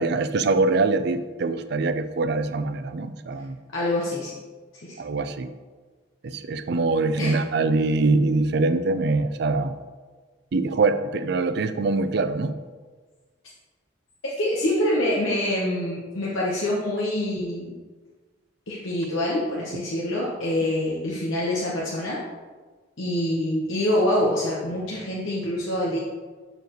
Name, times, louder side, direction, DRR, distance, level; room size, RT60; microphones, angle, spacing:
voice 1, 0.0-3.6 5.0-5.5 6.2-9.7 10.5-12.6, right 3 dB, 55° right, 11 dB, 0.4 m, -23 dB
voice 2, 3.7-4.3 4.7-5.0 7.2-7.4 14.4-17.7 18.7-22.2 23.0-26.0, left 1 dB, 80° left, -5 dB, 1.1 m, -25 dB
6.9 x 6.6 x 3.1 m, 1.4 s
head